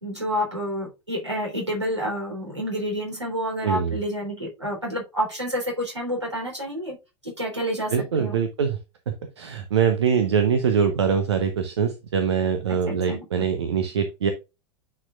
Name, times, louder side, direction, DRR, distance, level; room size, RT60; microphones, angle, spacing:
voice 1, 0.0-7.0 7.2-8.4 12.7-13.3, equal, 90° right, -1 dB, 3.5 m, -29 dB
voice 2, 3.6-4.0 7.9-8.8 9.1-14.3, right 7 dB, 70° right, 8 dB, 0.9 m, -23 dB
9.8 x 4.5 x 2.4 m, 0.26 s
figure-of-eight pair, 85°, 15 cm